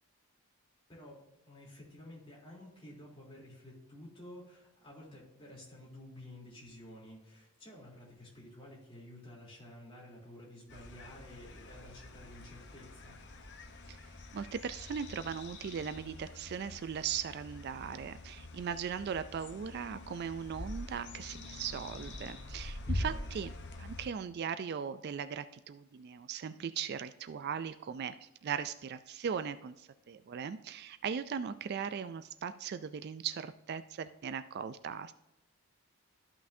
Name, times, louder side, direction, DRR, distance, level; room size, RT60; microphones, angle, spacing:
voice 1, 1.5-13.2 22.8-23.4, left 1 dB, 25° left, -5 dB, 3.2 m, -52 dB
sound 1, 10.7-24.1, left 1 dB, 50° left, 0.9 m, -44 dB
voice 2, 14.3-23.5 23.8-35.1, right 7 dB, 45° right, 12 dB, 0.3 m, -39 dB
13.5 x 5.9 x 2.7 m, 0.93 s
head